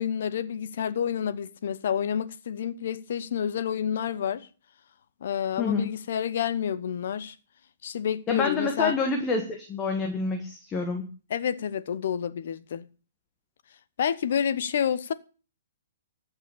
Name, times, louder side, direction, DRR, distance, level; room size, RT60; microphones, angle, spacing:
voice 1, 0.0-4.5 5.2-7.3 7.8-9.0 11.3-12.9 14.0-15.1, left 8 dB, 65° left, 1.1 m, -29 dB
voice 2, 5.6-5.9 8.3-11.1, left 4 dB, 15° left, 1.8 m, -27 dB
14.5 x 6.0 x 8.6 m
hypercardioid pair, 150°, 0 cm